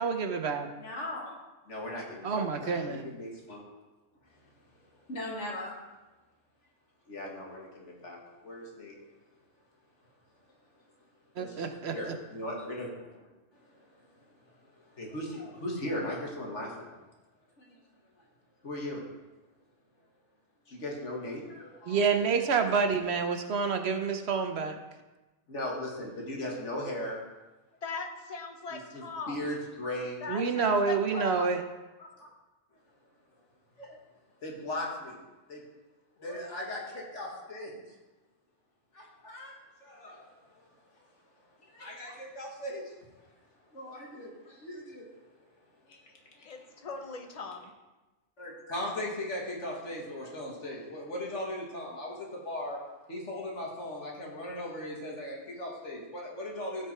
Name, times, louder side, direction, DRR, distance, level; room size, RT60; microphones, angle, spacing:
voice 1, 0.0-0.7 2.2-3.0 11.4-12.1 21.9-24.7 30.3-31.6, right 5 dB, 65° right, 6 dB, 1.1 m, -28 dB
voice 2, 0.8-1.4 1.7-3.6 4.3-4.4 5.1-5.7 7.1-9.0 11.4-11.7 11.9-13.3 13.5-16.9 17.6-17.8 18.6-19.0 20.7-22.2 25.5-27.2 28.7-30.3 32.0-32.3 33.8-34.0 34.4-35.2 35.5-35.6 36.2-37.8 38.9-41.0 41.6-42.9 43.7-45.2 45.9-46.9 48.4-52.8 53.1-56.9, left 1 dB, 85° left, -2 dB, 2.2 m, -38 dB
voice 3, 27.8-29.3 30.2-31.5 46.5-47.7, left 5 dB, 35° left, 5 dB, 0.9 m, -39 dB
15.0 x 5.1 x 4.4 m, 1.1 s
omnidirectional pair, 1.2 m